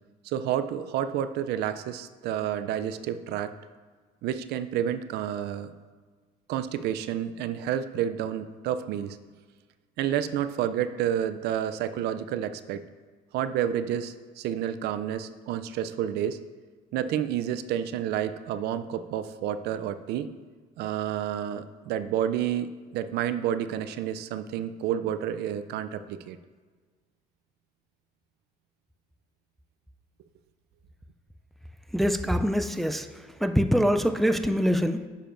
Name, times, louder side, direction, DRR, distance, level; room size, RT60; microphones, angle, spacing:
voice 1, 0.2-3.5 4.2-5.7 6.5-9.2 10.0-12.8 13.3-16.4 16.9-20.3 20.8-26.4, right 10 dB, 80° right, 12 dB, 0.4 m, -30 dB
voice 2, 31.9-33.1 33.4-35.1, equal, ahead, 9 dB, 0.3 m, -24 dB
10.0 x 6.6 x 2.5 m, 1.5 s
cardioid pair, 110°, 17 cm